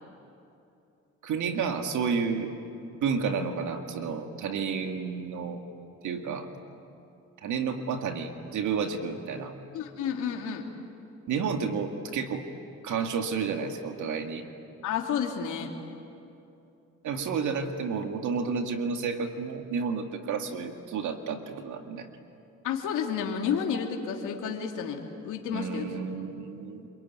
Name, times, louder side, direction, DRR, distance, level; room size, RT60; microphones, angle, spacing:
voice 1, 1.2-2.5 3.0-5.6 6.0-6.5 7.4-9.5 11.3-12.4 12.8-14.4 17.0-22.1 25.5-26.9, right 5 dB, 75° right, 5 dB, 2.2 m, -31 dB
voice 2, 9.7-10.6 14.8-15.7 22.6-26.0, left 7 dB, 85° left, 1 dB, 2.7 m, -31 dB
27.5 x 23.0 x 9.4 m, 2.7 s
cardioid pair, 90°, 30 cm